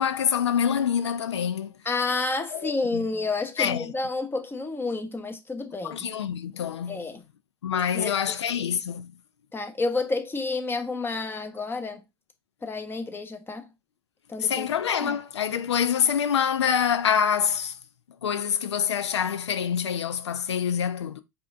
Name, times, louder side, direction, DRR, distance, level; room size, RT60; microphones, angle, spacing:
voice 1, 0.0-1.7 2.5-3.1 3.6-3.9 5.8-7.0 7.6-9.2 14.4-17.8 18.2-21.2, left 8 dB, 80° left, 0.6 m, -26 dB
voice 2, 1.8-6.0 6.9-7.2 7.9-8.1 8.5-8.6 9.5-12.0 12.6-13.7 14.3-14.7 15.0-15.2, left 3 dB, 15° left, 1.1 m, -30 dB
4.9 x 2.6 x 3.5 m
hypercardioid pair, 90°, 14 cm